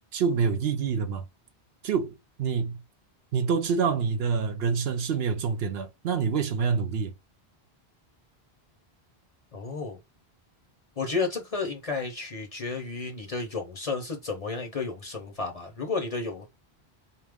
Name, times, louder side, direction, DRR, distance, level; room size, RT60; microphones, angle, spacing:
voice 1, 0.1-1.2 1.8-2.1 2.4-2.8 3.3-7.1, right 6 dB, 70° right, 0.8 m, -26 dB
voice 2, 9.5-10.0 11.0-16.5, left 4 dB, 40° left, 0.7 m, -32 dB
4.1 x 2.3 x 3.5 m
omnidirectional pair, 1.1 m